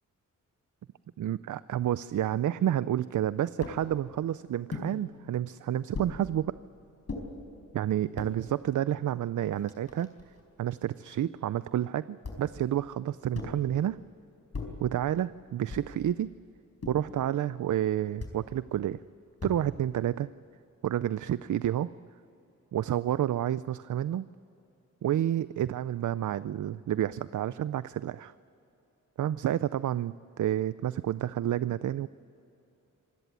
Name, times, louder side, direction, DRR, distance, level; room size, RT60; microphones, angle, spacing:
voice 1, 1.2-6.5 7.7-10.1 10.6-14.0 14.8-16.3 16.9-19.0 19.4-20.3 20.8-21.9 22.7-24.3 25.0-28.3 29.2-32.1, right 11 dB, 70° right, 16 dB, 0.5 m, -30 dB
sound 1, 3.6-3.8 4.7-4.9 5.9-6.2 7.1-7.3 8.0-8.3 9.1-9.2 9.4-10.4 12.2-12.6 13.3-13.7 14.5-14.9 15.7-16.0 16.8-17.2 18.2-18.4 19.4-19.8, left 3 dB, 50° left, 4.5 m, -39 dB
26.0 x 16.5 x 9.3 m, 2.9 s
wide cardioid pair, 105°, 32 cm